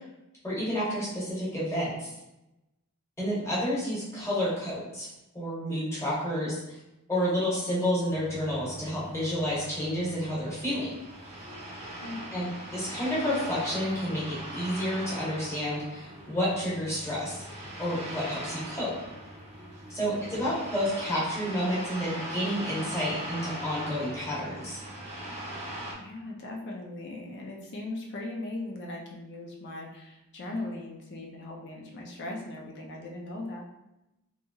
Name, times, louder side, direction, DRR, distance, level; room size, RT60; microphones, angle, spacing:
voice 1, 0.4-2.1 3.2-6.8 7.1-10.9 12.3-17.4 17.8-18.9 19.9-24.8, equal, 15° left, -9 dB, 1.0 m, -30 dB
sound 1, 8.1-25.9, right 1 dB, 25° right, 0.6 m, -40 dB
voice 2, 12.0-12.3 20.1-20.4 26.0-33.6, left 2 dB, 50° left, -1 dB, 0.4 m, -39 dB
2.8 x 2.8 x 2.3 m, 0.93 s
head